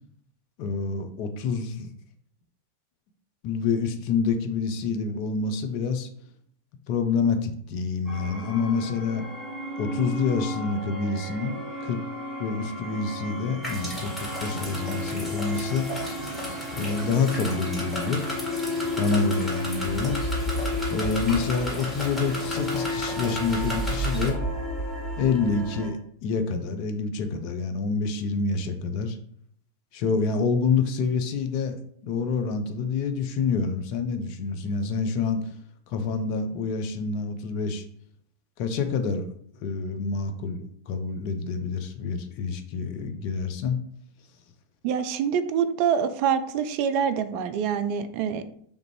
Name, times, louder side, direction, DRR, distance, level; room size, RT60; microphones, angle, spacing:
voice 1, 0.6-1.9 3.4-6.1 6.9-9.2 9.8-12.0 12.4-15.9 16.7-18.2 19.0-20.2 20.9-24.4 25.2-29.2 29.9-35.4 35.9-37.8 38.6-39.3 39.6-43.8, left 4 dB, 45° left, 7 dB, 0.5 m, -27 dB
sound 1, 8.1-25.9, left 1 dB, 25° left, 1.0 m, -33 dB
sound 2, 13.6-24.3, equal, 5° left, 1.4 m, -35 dB
voice 2, 44.8-48.4, right 7 dB, 45° right, 10 dB, 0.3 m, -25 dB
3.2 x 2.5 x 3.2 m, 0.63 s
figure-of-eight pair, 90°, 0 cm